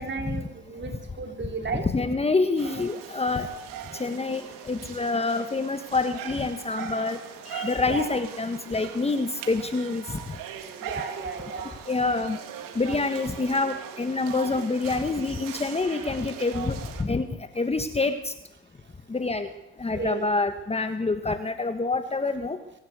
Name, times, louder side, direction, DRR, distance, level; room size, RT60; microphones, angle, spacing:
voice 1, 0.0-1.9 7.9-8.1 10.8-11.7 20.0-20.3, right 4 dB, 30° right, 4 dB, 4.3 m, -33 dB
voice 2, 1.8-3.5 3.9-7.2 7.5-10.2 11.9-12.4 12.7-17.3 17.5-18.3 19.1-19.5 19.8-22.6, left 3 dB, 15° left, 9 dB, 1.5 m, -27 dB
sound 1, 2.6-17.0, right 9 dB, 70° right, 3.1 m, -40 dB
23.5 x 15.5 x 8.2 m, 0.91 s
supercardioid pair, 90°, 35 cm